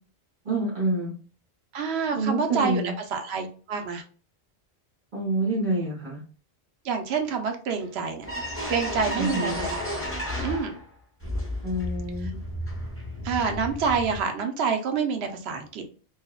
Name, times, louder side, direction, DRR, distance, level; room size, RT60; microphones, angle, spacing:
voice 1, 0.4-1.1 2.1-2.9 5.1-6.2 9.1-9.6 11.6-12.3, right 2 dB, 50° right, -5 dB, 1.0 m, -27 dB
voice 2, 1.7-2.8 3.1-4.0 6.8-8.2 8.7-9.9 10.4-10.8 13.2-15.8, right 5 dB, 85° right, 5 dB, 0.8 m, -27 dB
sound 1, 7.8-7.9 8.2-10.9 11.2-14.2, equal, 15° left, 0.7 m, -32 dB
3.1 x 2.0 x 2.2 m, 0.40 s
omnidirectional pair, 1.1 m